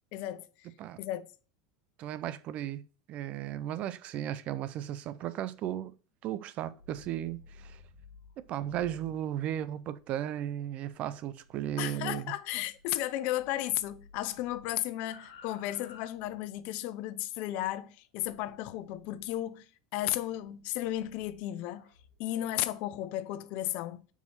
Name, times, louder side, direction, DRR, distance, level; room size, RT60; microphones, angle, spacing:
voice 1, 0.1-0.7 1.0-1.3 11.8-21.9 22.2-24.0, left 14 dB, 60° left, 0.5 m, -34 dB
voice 2, 2.0-5.9 6.2-7.8 8.4-12.3, right 11 dB, 50° right, 0.4 m, -35 dB
sound 1, 6.7-13.1 13.4-16.8 18.2-19.4 20.1-22.7, left 4 dB, 80° left, 1.6 m, -56 dB
4.7 x 4.2 x 5.6 m
hypercardioid pair, 95°, 3 cm